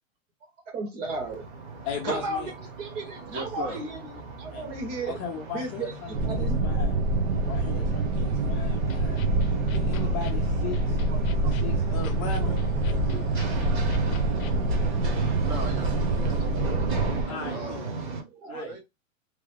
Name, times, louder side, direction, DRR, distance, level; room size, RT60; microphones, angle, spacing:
voice 1, 0.7-1.4 2.0-2.5 2.8-5.2 5.5-6.6 11.1-11.5 13.1-13.3 16.4-16.5 18.3-18.6, right 2 dB, 60° right, 4 dB, 1.6 m, -35 dB
sound 1, 1.0-18.2, right 4 dB, 45° right, 1.2 m, -38 dB
voice 2, 1.8-2.5 3.7-3.8 4.5-4.6 5.1-7.0 7.5-9.2 9.7-11.0 11.5-13.7 17.3-17.9 18.5-18.8, left 6 dB, 25° left, 1 dB, 0.4 m, -38 dB
voice 3, 3.3-3.8 9.9-10.2 15.4-16.9 17.5-18.0 18.5-18.8, right 2 dB, 20° right, 2 dB, 0.6 m, -39 dB
sound 2, 6.1-17.2, right 2 dB, 90° right, 0.9 m, -26 dB
sound 3, 8.8-14.8, left 2 dB, 80° left, 0.5 m, -36 dB
3.1 x 2.3 x 3.2 m, 0.21 s
hypercardioid pair, 140°, 41 cm